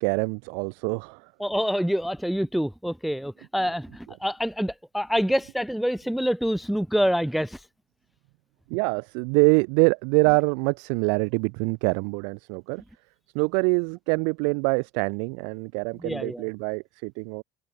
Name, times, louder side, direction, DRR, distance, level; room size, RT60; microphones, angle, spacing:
voice 1, 0.0-1.3 8.7-12.8 13.3-17.4, right 40 dB or more, 75° right, 0.6 m, -25 dB
voice 2, 1.4-7.7 16.0-16.5, equal, ahead, 0.3 m, -26 dB
supercardioid pair, 125°, 9 cm